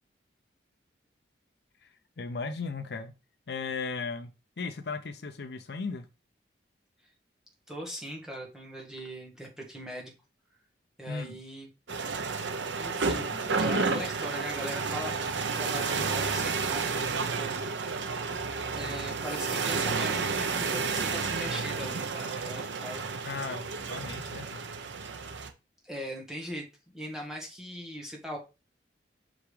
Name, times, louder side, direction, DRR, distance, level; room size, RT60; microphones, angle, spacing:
voice 1, 2.2-3.1 3.5-6.1 11.1-11.4 23.2-24.6, left 4 dB, 60° left, 9 dB, 0.5 m, -36 dB
voice 2, 7.7-10.1 11.0-12.1 12.8-17.6 18.7-23.3 25.8-26.7 26.9-28.4, equal, 5° right, -2 dB, 1.4 m, -40 dB
sound 1, 11.9-25.5, right 4 dB, 75° right, 0.7 m, -31 dB
5.9 x 5.1 x 3.3 m, 0.28 s
head